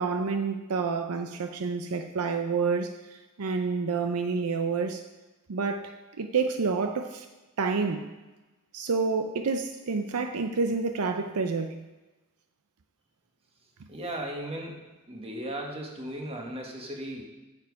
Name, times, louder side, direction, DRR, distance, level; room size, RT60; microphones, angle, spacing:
voice 1, 0.0-2.9 3.4-5.0 5.5-7.3 7.6-8.1 8.7-11.8, right 4 dB, 75° right, 7 dB, 0.6 m, -28 dB
voice 2, 13.9-14.8 15.1-17.2, right 1 dB, 25° right, 0 dB, 1.5 m, -36 dB
8.9 x 7.3 x 4.8 m, 1.1 s
head